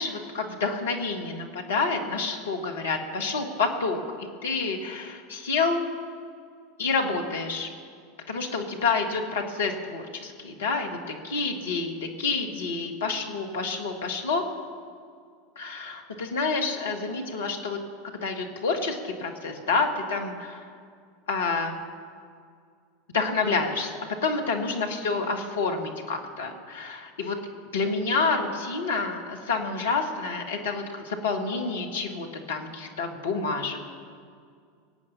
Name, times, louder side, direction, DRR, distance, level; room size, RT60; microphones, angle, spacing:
voice 1, 0.0-5.8 6.8-7.7 8.3-11.0 11.2-14.4 15.5-17.8 18.2-20.7 21.3-21.8 23.1-23.9 24.2-27.4 27.7-33.8, left 4 dB, 70° left, 3 dB, 1.8 m, -28 dB
23.0 x 8.7 x 5.5 m, 2.2 s
figure-of-eight pair, 80°, 0 cm